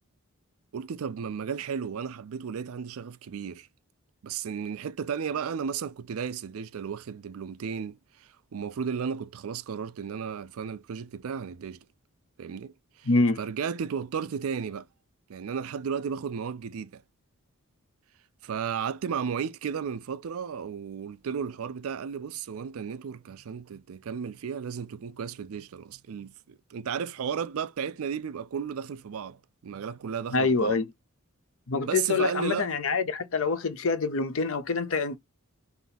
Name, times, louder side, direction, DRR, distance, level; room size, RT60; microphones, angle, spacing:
voice 1, 0.7-3.7 4.2-11.8 12.4-13.1 13.4-14.9 15.3-17.0 18.4-30.8 31.8-32.7, right 7 dB, 70° right, 0.4 m, -34 dB
voice 2, 13.1-13.4 30.3-30.8 31.7-35.2, left 4 dB, 60° left, 0.6 m, -26 dB
3.6 x 2.8 x 4.0 m
head